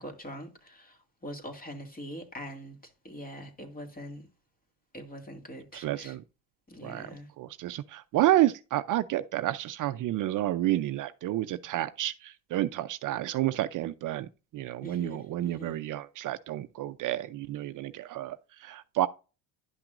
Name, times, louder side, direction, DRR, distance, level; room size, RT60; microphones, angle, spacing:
voice 1, 0.0-2.8 3.0-4.2 4.9-6.2 6.7-7.3 14.8-15.8, equal, 20° left, 2.2 m, -43 dB
voice 2, 5.7-6.2 6.8-7.1 7.4-14.3 14.5-19.1, right 14 dB, 50° right, 0.6 m, -30 dB
11.0 x 5.8 x 2.5 m
supercardioid pair, 85°, 42 cm